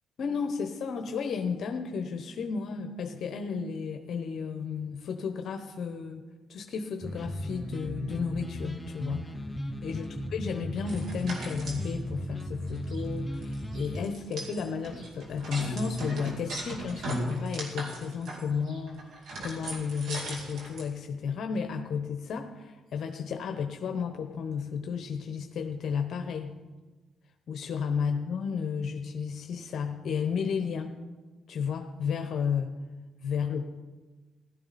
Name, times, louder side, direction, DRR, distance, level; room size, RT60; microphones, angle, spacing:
voice 1, 0.2-6.2 6.5-9.3 9.8-26.6 27.5-30.9 31.5-32.7 33.2-33.6, left 6 dB, 60° left, 5 dB, 1.0 m, -33 dB
sound 1, 7.0-14.1, equal, 10° left, 0.8 m, -36 dB
sound 2, 10.8-11.9 12.4-12.5 12.7-13.0 13.4-20.8, right 1 dB, 65° right, 3.6 m, -37 dB
16.5 x 12.5 x 4.3 m, 1.2 s
cardioid pair, 105°, 0 cm